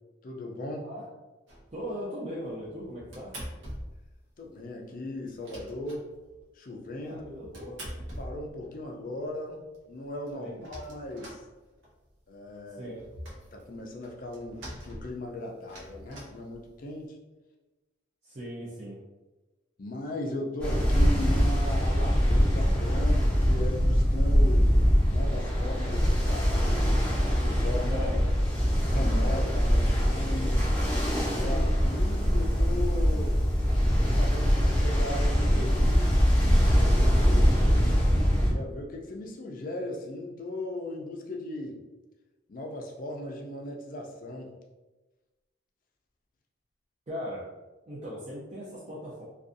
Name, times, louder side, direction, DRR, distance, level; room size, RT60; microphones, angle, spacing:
voice 1, 0.2-0.9 4.4-6.1 6.5-7.3 8.2-9.6 9.9-11.4 12.3-13.0 13.5-17.2 19.8-24.7 25.1-26.9 27.3-28.1 28.9-30.7 31.2-33.4 34.0-36.1 36.7-37.7 38.4-41.8 42.5-44.5, left 1 dB, 45° left, 0 dB, 0.4 m, -37 dB
sound 1, 1.5-1.9 2.4-4.2 4.4-4.5 4.8-4.9 5.2-6.5 7.0-8.9 9.4-9.5 9.7-9.8 10.0-12.1 12.5-17.0, equal, 80° right, 0.7 m, -44 dB
voice 2, 1.7-3.3 7.0-7.8 10.3-10.5 12.7-13.0 18.2-19.0 27.9-28.2 31.3-31.6 37.5-37.7 47.1-47.4 47.9-49.2, equal, 35° right, -8 dB, 0.5 m, -38 dB
Ocean, 20.6-38.5, equal, 5° left, 0.6 m, -23 dB
2.5 x 2.3 x 2.5 m, 1.1 s
head